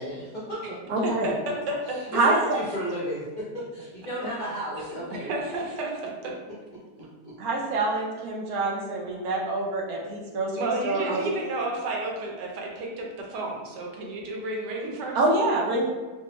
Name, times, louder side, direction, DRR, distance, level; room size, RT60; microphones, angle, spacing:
voice 1, 0.0-0.8 1.9-5.3 7.0-7.3, equal, 50° left, -11 dB, 0.5 m, -34 dB
voice 2, 0.9-1.3 2.1-2.6 7.4-11.2 15.1-15.9, right 2 dB, 70° right, -1 dB, 1.0 m, -26 dB
voice 3, 4.7-6.3 7.9-8.0 10.6-15.2, right 2 dB, 90° right, -1 dB, 1.3 m, -32 dB
3.3 x 2.0 x 2.9 m, 1.3 s
omnidirectional pair, 1.8 m